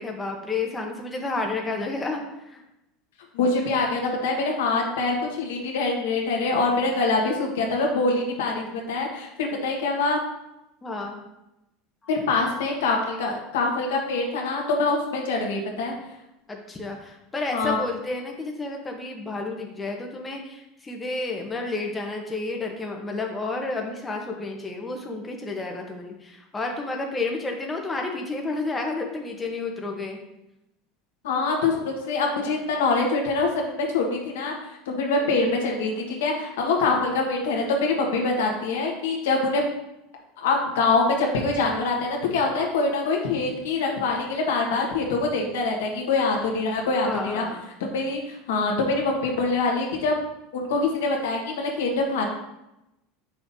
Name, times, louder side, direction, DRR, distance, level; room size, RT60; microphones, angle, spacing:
voice 1, 0.0-2.6 10.8-11.2 16.5-30.2 35.1-35.4 47.0-47.7, left 3 dB, 15° left, 1 dB, 1.0 m, -31 dB
voice 2, 3.3-10.2 12.1-15.9 17.5-17.8 31.2-34.5 34.9-39.6 40.4-47.4 47.8-50.2 50.5-52.2, left 3 dB, 90° left, 0 dB, 1.4 m, -24 dB
6.8 x 5.8 x 2.7 m, 0.89 s
supercardioid pair, 115°, 0 cm